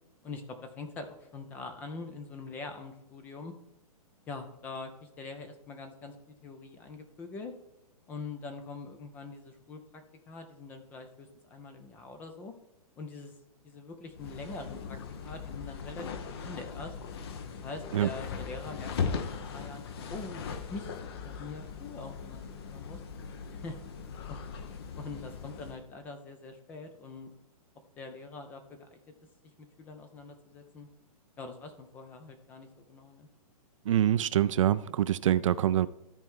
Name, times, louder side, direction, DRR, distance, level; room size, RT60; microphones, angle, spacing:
voice 1, 0.2-3.5 4.3-7.5 8.1-12.5 13.0-13.4 13.6-16.9 17.5-20.9 21.2-23.0 23.5-23.8 24.3-24.5 25.0-27.3 28.0-29.0 29.8-30.9 31.4-33.3, left 3 dB, 10° left, 0.4 m, -44 dB
sound 1, 14.1-25.8, left 6 dB, 40° left, 0.8 m, -39 dB
voice 2, 33.8-35.9, right 11 dB, 55° right, 0.4 m, -25 dB
13.5 x 4.5 x 3.6 m
hypercardioid pair, 165°, 19 cm